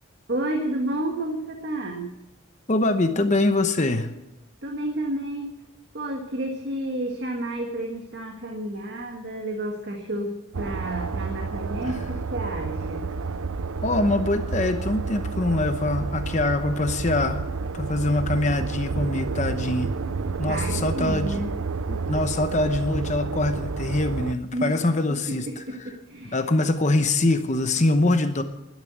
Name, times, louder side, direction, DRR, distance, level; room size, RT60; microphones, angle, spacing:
voice 1, 0.3-2.1 4.6-5.5 5.9-13.1 20.5-21.5 24.5-24.7 25.1-25.2 25.5-26.4, right 1 dB, 50° right, 2 dB, 1.7 m, -31 dB
voice 2, 2.7-4.1 11.8-12.0 13.8-17.4 17.7-19.9 20.4-21.4 21.9-25.6 26.3-28.4, left 2 dB, 35° left, 8 dB, 0.9 m, -24 dB
sound 1, 10.5-24.3, right 4 dB, 80° right, 0.6 m, -30 dB
12.0 x 10.5 x 9.3 m, 0.97 s
head